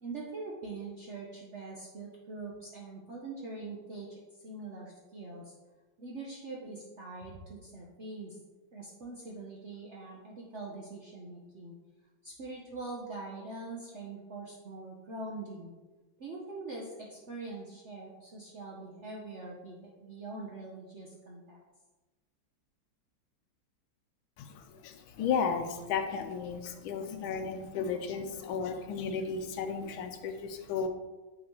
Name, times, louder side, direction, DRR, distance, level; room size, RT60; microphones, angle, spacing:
voice 1, 0.0-5.5 6.0-8.4 8.7-11.7 12.2-15.7 16.2-21.6, right 3 dB, 60° right, -3 dB, 0.7 m, -43 dB
voice 2, 24.4-30.9, left 6 dB, 85° left, 6 dB, 1.4 m, -34 dB
8.6 x 4.0 x 3.0 m, 1.2 s
omnidirectional pair, 2.2 m